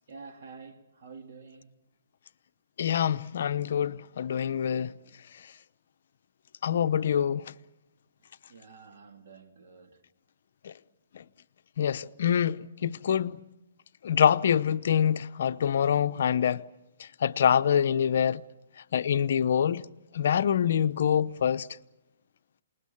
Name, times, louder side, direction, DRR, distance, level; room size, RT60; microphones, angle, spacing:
voice 1, 0.1-1.7 8.5-10.0, right 4 dB, 55° right, 3.0 m, -48 dB
voice 2, 2.8-4.9 6.6-7.4 10.6-10.7 11.8-13.4 14.0-16.6 17.2-18.4 18.9-19.8 20.1-21.7, left 8 dB, 60° left, 0.7 m, -25 dB
28.0 x 20.0 x 7.2 m
hypercardioid pair, 165°, 0 cm